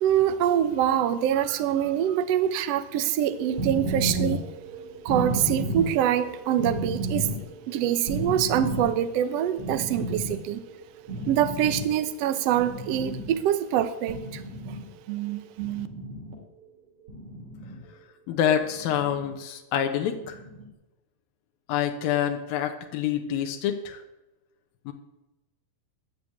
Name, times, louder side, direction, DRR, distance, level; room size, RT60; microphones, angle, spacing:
voice 1, 0.0-4.4 5.0-7.3 7.7-10.6 11.3-14.4 15.1-15.9, right 10 dB, 75° right, 11 dB, 1.5 m, -25 dB
sound 1, 3.3-12.1 12.3-13.5 14.1-14.8 15.6-16.3 17.1-17.8 18.6-19.3 20.1-20.7, right 1 dB, 40° right, 3.3 m, -33 dB
voice 2, 18.3-20.4 21.7-24.0 24.9-25.0, left 9 dB, 85° left, 5 dB, 3.0 m, -27 dB
20.0 x 6.7 x 8.7 m, 1.0 s
omnidirectional pair, 4.1 m